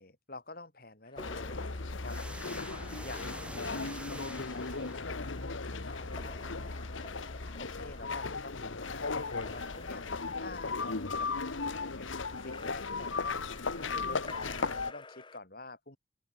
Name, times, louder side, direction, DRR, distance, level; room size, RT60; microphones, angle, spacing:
voice 1, 0.0-2.7 3.0-10.0 10.4-12.1 12.4-16.0, left 2 dB, 50° left, 4.6 m, -49 dB
Splash splatter / Drip / Trickle dribble, 1.1-15.4, left 3 dB, 25° left, 2.2 m, -52 dB
sound 1, 1.2-14.9, left 4 dB, 80° left, 1.4 m, -36 dB
sound 2, 2.0-5.4, right 1 dB, 5° right, 1.0 m, -46 dB
open air
head